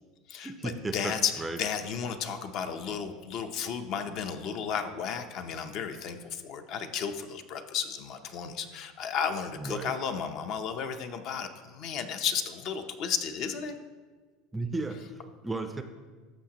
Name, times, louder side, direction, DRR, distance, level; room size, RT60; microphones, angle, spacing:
voice 1, 0.4-1.6 9.6-9.9 14.5-15.8, right 2 dB, 10° right, 7 dB, 0.4 m, -35 dB
voice 2, 0.9-1.3 1.6-13.8, left 7 dB, 45° left, 8 dB, 0.6 m, -33 dB
13.0 x 6.5 x 2.9 m, 1.4 s
supercardioid pair, 155°, 0 cm